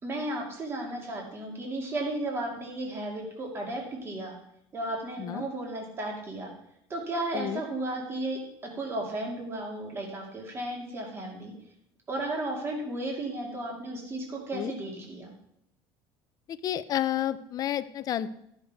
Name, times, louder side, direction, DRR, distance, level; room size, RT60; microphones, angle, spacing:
voice 1, 0.0-4.4 4.7-6.5 6.9-11.5 12.1-15.3, right 1 dB, 25° right, 0 dB, 2.3 m, -34 dB
voice 2, 16.5-18.3, left 11 dB, 40° left, 13 dB, 0.6 m, -30 dB
13.0 x 6.6 x 4.7 m, 0.77 s
cardioid pair, 145°, 10 cm